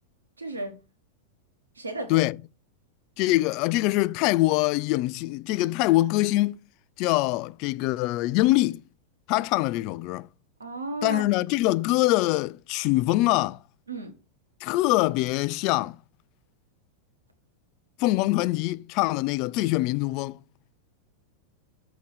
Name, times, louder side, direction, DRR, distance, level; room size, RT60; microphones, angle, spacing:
voice 1, 0.4-0.7 1.8-2.2 10.6-11.2 13.9-14.1, right 2 dB, 75° right, 1.5 m, -33 dB
voice 2, 3.2-6.6 7.0-8.8 9.3-10.3 11.0-13.6 14.6-16.0 18.0-20.4, left 18 dB, 40° left, 0.3 m, -24 dB
6.7 x 3.9 x 6.4 m
figure-of-eight pair, 90°, 0 cm